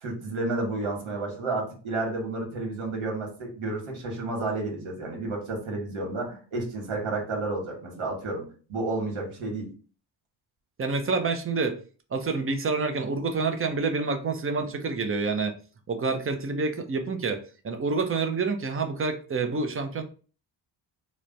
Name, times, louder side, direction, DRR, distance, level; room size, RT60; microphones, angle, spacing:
voice 1, 0.0-9.7, right 2 dB, 85° right, 1 dB, 1.4 m, -31 dB
voice 2, 10.8-11.8 12.1-15.5 15.9-20.0, right 4 dB, 30° right, 6 dB, 0.6 m, -28 dB
3.1 x 2.1 x 3.8 m, 0.38 s
cardioid pair, 100°, 48 cm